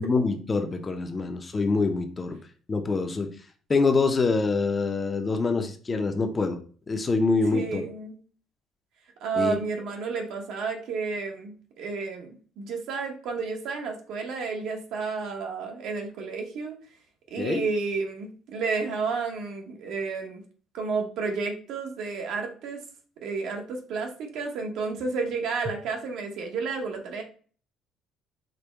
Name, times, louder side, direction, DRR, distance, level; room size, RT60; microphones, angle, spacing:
voice 1, 0.0-2.4 2.7-3.3 3.7-6.6 6.9-7.8 9.4-9.6 17.4-17.6, left 3 dB, 20° left, 6 dB, 0.6 m, -25 dB
voice 2, 7.5-8.2 9.2-12.3 12.6-16.8 17.3-20.4 20.7-22.8 23.2-27.2, right 4 dB, 70° right, 2 dB, 1.1 m, -31 dB
5.1 x 2.2 x 4.4 m, 0.41 s
cardioid pair, 140°, 0 cm